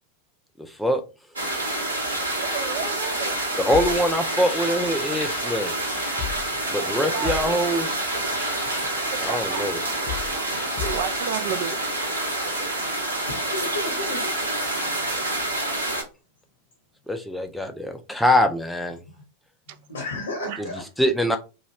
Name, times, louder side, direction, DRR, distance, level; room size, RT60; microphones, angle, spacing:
sound 1, 1.4-16.0, right 2 dB, 85° right, 1.0 m, -27 dB
voice 1, 2.4-3.3 7.0-7.4 9.1-9.7 10.8-12.0 19.7-19.8 20.4-20.7, right 9 dB, 55° right, 0.4 m, -32 dB
sound 2, 3.5-11.6, left 9 dB, 45° left, 0.6 m, -38 dB
voice 2, 3.6-5.7 6.7-8.0 9.2-9.8 17.1-19.0 21.0-21.4, equal, 5° left, 0.5 m, -23 dB
voice 3, 13.3-14.4 14.8-15.1 19.1-19.2 19.7-20.8, left 3 dB, 75° left, 0.8 m, -34 dB
3.0 x 2.3 x 2.9 m
figure-of-eight pair, 85°, 0 cm